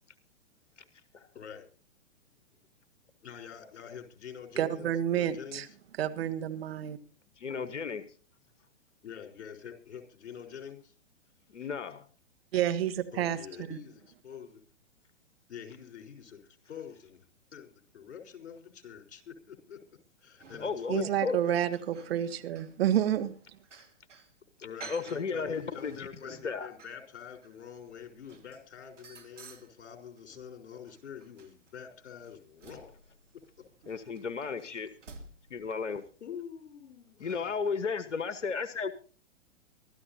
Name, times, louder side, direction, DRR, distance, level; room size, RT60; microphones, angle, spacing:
voice 1, 1.3-1.7 3.2-5.8 9.0-10.9 13.1-14.6 15.5-17.2 17.5-19.8 20.2-21.6 24.6-33.0 33.3-33.7 36.2-37.6, left 8 dB, 65° left, 3 dB, 4.4 m, -46 dB
voice 2, 4.6-5.6 6.0-7.0 12.5-13.4 13.7-13.8 20.9-23.3, right 11 dB, 55° right, 10 dB, 1.5 m, -29 dB
voice 3, 7.4-8.0 11.5-12.0 20.6-21.4 24.9-26.7 33.9-34.9 35.5-36.0 37.2-38.9, left 5 dB, 80° left, 12 dB, 1.3 m, -34 dB
sound 1, 20.4-21.1 21.4-24.3 24.8-30.5 30.9-36.1 37.1-37.4, right 4 dB, 85° right, 2.8 m, -53 dB
24.5 x 13.5 x 2.8 m, 0.38 s
hypercardioid pair, 120°, 36 cm